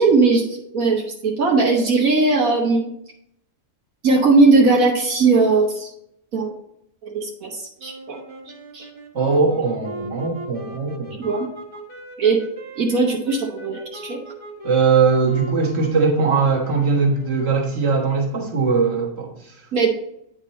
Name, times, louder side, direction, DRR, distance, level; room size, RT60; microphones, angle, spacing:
voice 1, 0.0-2.9 4.0-5.9 6.3-6.5 7.0-8.2 8.7-8.9 11.2-11.5 12.2-12.4 12.8-14.2 19.7-19.9, right 3 dB, 80° right, -2 dB, 1.6 m, -18 dB
sound 1, 7.8-18.5, right 2 dB, 20° right, 1.3 m, -39 dB
voice 2, 9.1-11.2 14.6-19.5, right 4 dB, 50° right, -2 dB, 1.7 m, -20 dB
9.2 x 4.5 x 4.1 m, 0.76 s
omnidirectional pair, 1.4 m